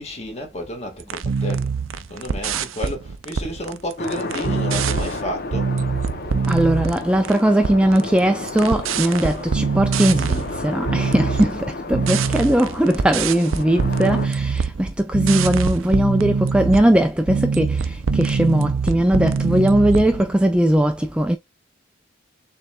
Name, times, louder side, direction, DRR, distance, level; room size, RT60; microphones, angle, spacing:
voice 1, 0.0-1.8 2.1-5.7, equal, 35° left, 1.8 m, -31 dB
sound 1, 1.0-7.4 7.6-8.2 8.5-20.4, right 5 dB, 80° right, 0.5 m, -24 dB
sound 2, 4.0-14.3, left 3 dB, 50° left, 0.9 m, -32 dB
voice 2, 6.5-21.4, right 1 dB, 5° right, 0.4 m, -19 dB
6.7 x 3.3 x 2.4 m
head